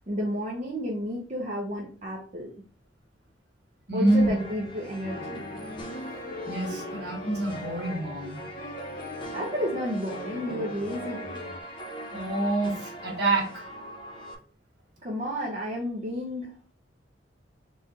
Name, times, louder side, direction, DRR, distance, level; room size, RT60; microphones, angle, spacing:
voice 1, 0.1-2.5 3.9-5.4 9.0-11.4 15.0-16.7, equal, 40° right, -3 dB, 0.7 m, -32 dB
voice 2, 3.9-4.3 6.4-8.5 12.1-13.7, right 2 dB, 60° right, -1 dB, 1.6 m, -26 dB
sound 1, 4.1-14.3, right 1 dB, 25° left, 0.9 m, -42 dB
sound 2, 5.0-11.6, left 2 dB, 50° left, 0.8 m, -39 dB
4.1 x 2.4 x 4.1 m, 0.43 s
head